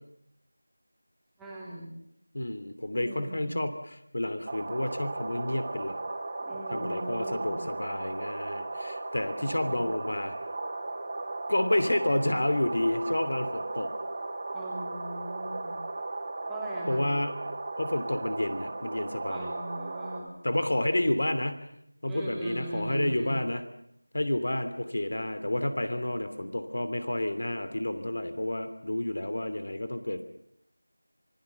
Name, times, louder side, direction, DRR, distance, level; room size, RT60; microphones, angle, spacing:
voice 1, 1.4-1.9 2.9-3.6 6.4-7.6 9.4-9.8 14.5-15.8 16.5-17.1 19.3-20.3 22.1-23.4, right 1 dB, 5° right, -6 dB, 3.1 m, -39 dB
voice 2, 2.3-6.0 6.7-10.3 11.5-13.9 16.9-17.4 17.8-19.5 20.4-21.7 22.0-23.6 24.1-30.2, left 1 dB, 55° left, 10 dB, 2.8 m, -30 dB
sound 1, 4.5-20.2, right 2 dB, 25° right, 3.6 m, -36 dB
27.5 x 20.5 x 6.9 m, 0.75 s
figure-of-eight pair, 175°, 0 cm